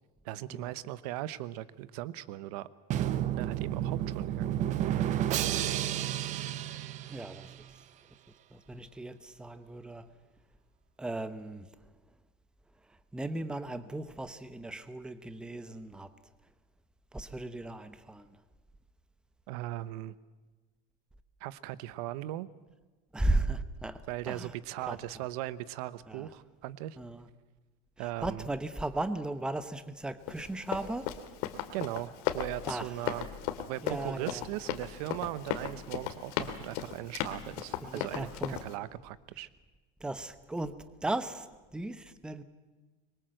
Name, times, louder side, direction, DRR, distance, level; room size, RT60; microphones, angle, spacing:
voice 1, 0.2-2.7 3.4-4.5 19.5-20.2 21.4-22.5 24.1-27.0 28.0-28.5 31.7-33.3 33.7-39.5, right 15 dB, 75° right, 16 dB, 1.1 m, -38 dB
Drum, 2.9-7.8, right 11 dB, 40° right, 1.0 m, -31 dB
voice 2, 7.1-7.5 8.5-10.1 11.0-11.7 13.1-16.1 17.1-18.4 23.1-24.5 24.9-25.0 26.1-26.3 27.0-27.3 28.0-31.1 32.7-32.9 33.8-34.4 37.8-38.6 40.0-41.5 41.7-42.4, right 2 dB, 5° right, 11 dB, 0.9 m, -36 dB
Run, 30.3-38.7, left 11 dB, 75° left, 2.5 m, -36 dB
25.0 x 23.0 x 7.8 m, 1.3 s
cardioid pair, 165°, 20 cm